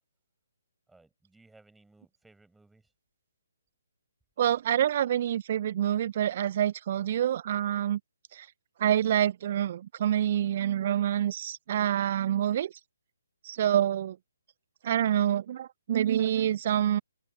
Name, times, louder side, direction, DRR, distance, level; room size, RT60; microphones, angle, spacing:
voice 1, 0.9-2.9, right 2 dB, 5° right, 5.5 m, -60 dB
voice 2, 4.4-8.0 8.3-8.5 8.8-12.7 13.4-14.2 14.8-17.0, right 10 dB, 40° right, 0.3 m, -27 dB
open air
figure-of-eight pair, 135°, 0 cm